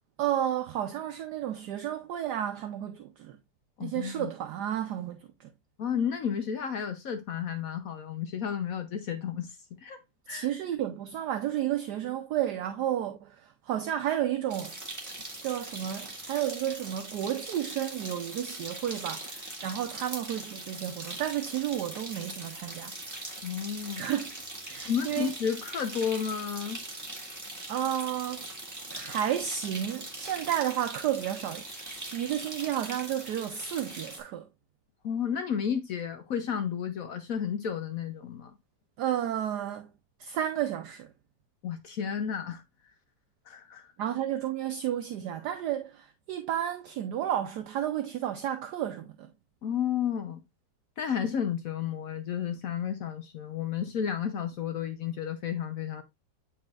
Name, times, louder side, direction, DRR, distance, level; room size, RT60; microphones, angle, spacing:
voice 1, 0.2-3.4 3.8-5.5 10.3-14.8 15.4-23.2 24.0-24.3 24.7-25.3 27.7-28.5 28.9-34.5 39.0-39.9 40.2-41.1 44.0-49.3, right 11 dB, 70° right, 1.1 m, -32 dB
voice 2, 3.8-4.3 5.8-9.6 9.8-10.0 10.3-10.5 23.4-24.0 24.9-26.8 35.0-38.5 41.6-42.6 43.5-43.9 49.6-50.4 51.0-56.0, left 8 dB, 60° left, 1.0 m, -32 dB
sound 1, 14.5-34.2, right 1 dB, 10° right, 1.4 m, -41 dB
9.2 x 4.3 x 2.4 m
omnidirectional pair, 2.0 m